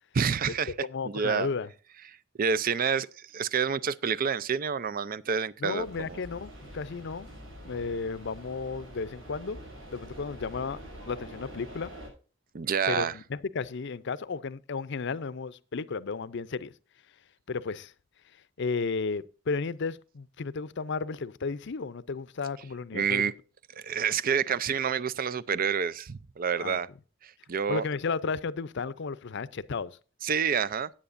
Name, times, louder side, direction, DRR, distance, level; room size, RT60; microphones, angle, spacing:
voice 1, 0.1-1.5 2.4-3.1 3.3-6.2 12.5-13.1 22.9-23.3 23.8-26.9 27.2-27.8 30.2-30.9, right 6 dB, 45° right, 0.5 m, -28 dB
voice 2, 0.8-1.7 5.6-7.3 7.6-9.6 9.9-10.8 11.1-11.9 12.9-16.7 17.5-17.9 18.6-23.3 26.6-26.8 27.7-30.0, left 4 dB, 65° left, 0.6 m, -33 dB
sound 1, 5.8-12.1, right 1 dB, 80° right, 5.9 m, -46 dB
17.0 x 8.8 x 2.6 m
head